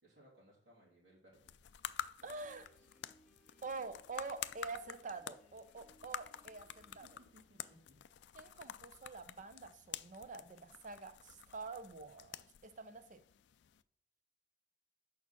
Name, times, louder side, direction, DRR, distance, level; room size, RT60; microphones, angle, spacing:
voice 1, 0.0-1.5 7.3-7.9, equal, 80° right, -5 dB, 2.8 m, -64 dB
sound 1, 1.3-13.8, left 10 dB, 70° left, 0.4 m, -49 dB
Piano, 2.2-7.3, equal, 5° left, 1.2 m, -69 dB
voice 2, 2.2-2.7 3.6-7.2 8.3-13.2, right 4 dB, 45° right, 11 dB, 0.6 m, -47 dB
6.4 x 5.7 x 5.9 m, 0.63 s
head